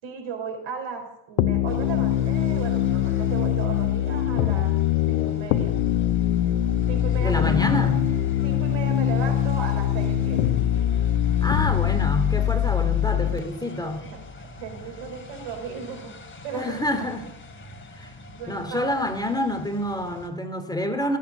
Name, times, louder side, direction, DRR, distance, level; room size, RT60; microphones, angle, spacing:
voice 1, 0.0-4.8 5.1-5.7 6.9-7.9 8.4-10.4 13.8-14.2 14.6-16.2 16.4-17.1 18.3-18.8, right 6 dB, 70° right, 5 dB, 4.9 m, -36 dB
sound 1, 1.4-13.4, left 11 dB, 85° left, 1.0 m, -23 dB
sound 2, 1.7-20.3, left 2 dB, 25° left, 3.2 m, -44 dB
voice 2, 7.2-8.0 11.4-14.0 16.5-17.3 17.9-18.1 18.5-21.2, left 1 dB, 10° left, 6 dB, 2.7 m, -27 dB
15.5 x 8.5 x 9.9 m, 0.83 s
supercardioid pair, 65°, 48 cm